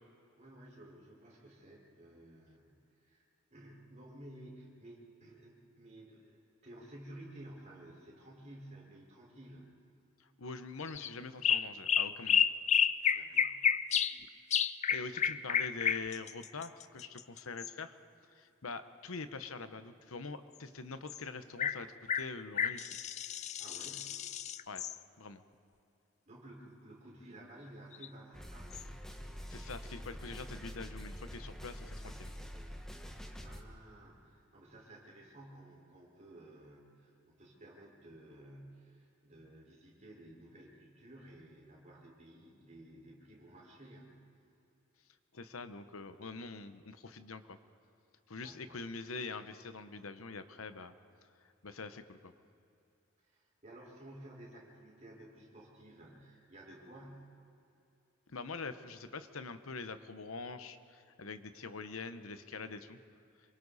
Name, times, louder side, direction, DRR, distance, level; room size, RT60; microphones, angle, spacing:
voice 1, 0.4-9.7 13.1-13.7 14.8-14.9 15.2-15.3 23.6-24.2 26.3-28.7 33.4-44.2 48.4-48.8 53.3-57.4, right 1 dB, 35° right, -3 dB, 4.9 m, -54 dB
voice 2, 10.2-12.5 14.9-18.0 18.3-22.9 24.7-24.8 25.2-25.4 29.5-32.3 45.3-47.6 48.3-50.9 51.6-52.3 58.3-63.0, left 4 dB, 85° left, 10 dB, 1.0 m, -44 dB
sound 1, 10.9-11.1 11.4-14.2 14.5-17.7 21.1-21.2 21.6-21.8 22.1-25.0 27.9-28.1 28.7-28.8, left 8 dB, 35° left, 0.4 m, -31 dB
sound 2, 28.3-33.6, equal, ahead, 1.3 m, -46 dB
27.0 x 23.5 x 4.2 m, 2.7 s
head